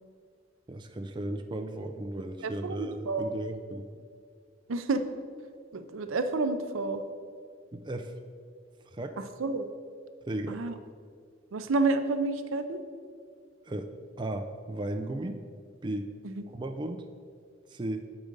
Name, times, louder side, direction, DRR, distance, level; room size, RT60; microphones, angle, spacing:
voice 1, 0.7-3.9 7.7-8.1 8.9-9.2 10.3-10.6 13.6-13.9 14.2-15.4 15.8-16.1 16.5-17.0 17.7-18.0, right 1 dB, 25° right, 5 dB, 0.4 m, -35 dB
voice 2, 2.4-3.3 4.7-5.0 5.7-7.0 9.2-9.7 10.5-10.7 11.5-12.8 16.2-16.4, right 3 dB, 85° right, 9 dB, 0.5 m, -30 dB
7.5 x 4.9 x 5.2 m, 2.1 s
head